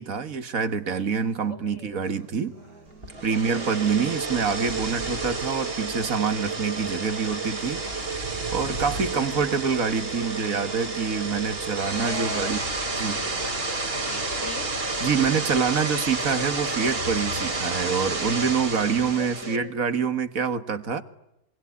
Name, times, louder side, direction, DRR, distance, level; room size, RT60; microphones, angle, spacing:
voice 1, 0.0-2.5 3.2-7.8 8.5-12.6 13.0-13.2 15.0-21.0, right 6 dB, 65° right, 11 dB, 2.0 m, -26 dB
voice 2, 1.5-2.0 3.3-4.0 8.6-9.0 11.9-12.7 13.0-13.6 14.1-14.7 17.8-18.1 19.2-19.7, left 4 dB, 55° left, 8 dB, 3.4 m, -41 dB
Acoustic guitar, 2.0-18.1, right 3 dB, 85° right, 5.2 m, -50 dB
sound 1, 3.0-19.6, right 3 dB, 40° right, 2.5 m, -30 dB
26.0 x 23.5 x 9.6 m, 0.84 s
omnidirectional pair, 1.5 m